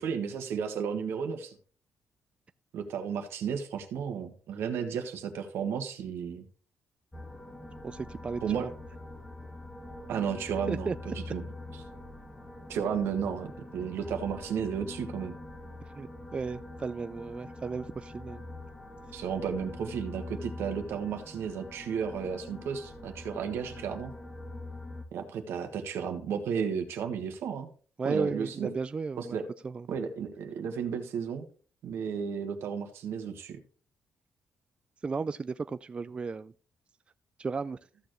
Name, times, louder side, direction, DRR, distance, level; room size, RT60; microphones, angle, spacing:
voice 1, 0.0-1.5 2.7-6.5 8.4-8.7 10.1-11.4 12.7-15.4 19.1-24.1 25.1-27.7 28.0-28.7 29.2-29.4 29.9-31.4 31.8-33.6, right 7 dB, 80° right, 1.5 m, -33 dB
sound 1, 7.1-25.0, left 2 dB, 10° left, 1.5 m, -44 dB
voice 2, 7.8-8.7 10.7-11.0 15.9-18.4 28.0-29.4 29.6-29.9 35.0-36.5 37.4-37.8, right 4 dB, 25° right, 0.3 m, -34 dB
14.0 x 6.7 x 3.1 m
cardioid pair, 120°, 4 cm